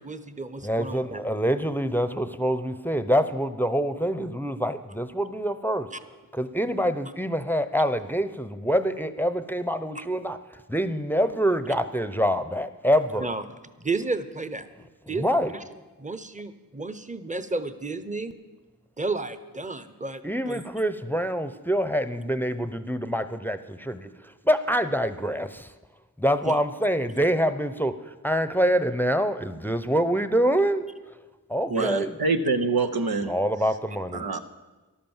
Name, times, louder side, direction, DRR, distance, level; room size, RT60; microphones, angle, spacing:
voice 1, 0.0-1.2 5.9-6.0 13.2-13.4 13.8-14.7 15.1-15.5 16.0-18.3 19.0-20.2 20.5-20.6 26.4-26.6 31.7-32.0, right 3 dB, 20° right, 13 dB, 0.9 m, -32 dB
voice 2, 0.6-5.9 6.3-13.3 15.1-15.5 20.2-25.7 26.2-30.9 31.5-32.2 33.2-34.2, equal, 5° left, 12 dB, 0.7 m, -26 dB
voice 3, 31.7-33.3 34.1-34.4, right 3 dB, 85° right, 7 dB, 0.9 m, -25 dB
13.5 x 11.5 x 7.2 m, 1.2 s
wide cardioid pair, 45°, 35 cm